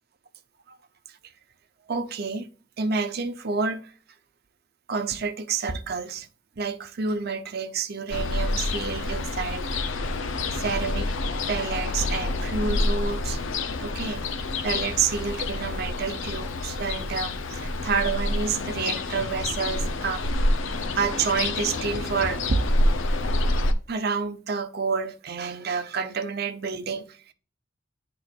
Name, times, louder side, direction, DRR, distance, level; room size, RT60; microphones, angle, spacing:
voice 1, 1.9-2.5 2.8-3.9 4.9-6.3 6.6-9.8 10.5-11.1 11.5-13.4 13.8-14.2 14.6-20.3 20.9-22.6 23.9-27.2, right 5 dB, 50° right, 0.7 m, -29 dB
Ocean, 8.1-23.7, left 2 dB, 70° left, 0.6 m, -27 dB
10.5 x 3.8 x 2.5 m
head